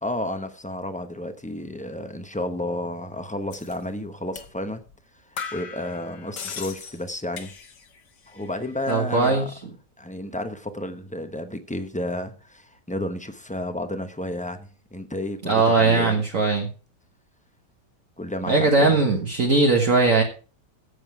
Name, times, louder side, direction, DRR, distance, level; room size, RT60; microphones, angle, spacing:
voice 1, 0.0-4.8 5.2-7.5 8.3-9.5 10.0-16.2 18.2-19.0, left 1 dB, 10° left, 8 dB, 0.5 m, -32 dB
sound 1, 3.5-3.8 4.4-4.5 4.9-5.0 5.4-8.0 8.3-8.9, left 6 dB, 80° left, 1.9 m, -38 dB
voice 2, 8.9-9.5 15.4-16.7 18.5-20.2, right 3 dB, 50° right, 1 dB, 1.7 m, -19 dB
13.5 x 7.6 x 4.8 m, 0.38 s
omnidirectional pair, 1.8 m